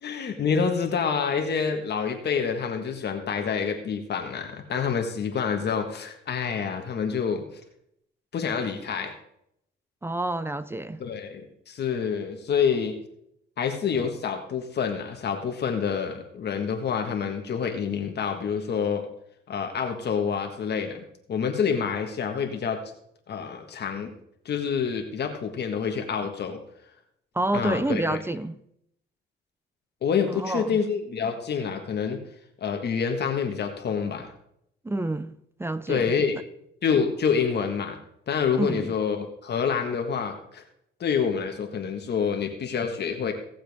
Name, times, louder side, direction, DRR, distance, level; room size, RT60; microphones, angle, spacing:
voice 1, 0.0-7.4 8.3-9.1 11.0-13.0 13.6-19.1 19.5-22.8 23.3-24.1 24.5-26.6 27.5-28.2 30.0-32.2 32.6-34.3 35.9-36.4 36.8-38.0 38.3-40.6 41.0-43.3, left 6 dB, 55° left, 1.6 m, -27 dB
voice 2, 10.0-11.0 27.3-28.5 30.3-30.8 34.8-35.3 35.6-36.1 38.6-38.9, right 1 dB, 10° right, 0.5 m, -28 dB
17.5 x 7.4 x 3.5 m
cardioid pair, 90°, 20 cm